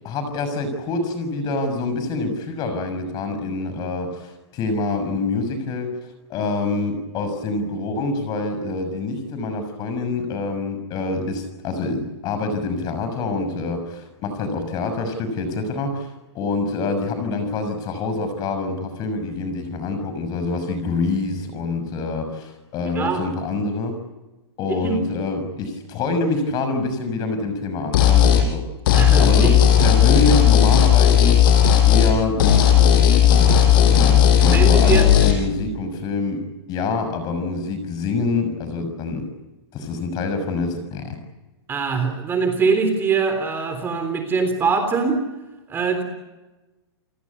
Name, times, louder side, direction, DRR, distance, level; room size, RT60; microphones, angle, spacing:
voice 1, 0.0-5.9 6.3-16.1 16.3-24.0 24.6-28.6 29.2-31.5 31.8-39.2 39.7-41.2, left 3 dB, 30° left, 8 dB, 6.3 m, -26 dB
sound 1, 27.9-28.5 28.9-32.1 32.4-35.3, left 9 dB, 50° left, 6.4 m, -14 dB
voice 2, 28.9-29.6 33.5-33.6 34.5-35.2 41.7-45.2 45.7-46.0, right 4 dB, 15° right, 6 dB, 3.5 m, -22 dB
30.0 x 18.5 x 9.6 m, 1.1 s
hypercardioid pair, 155°, 14 cm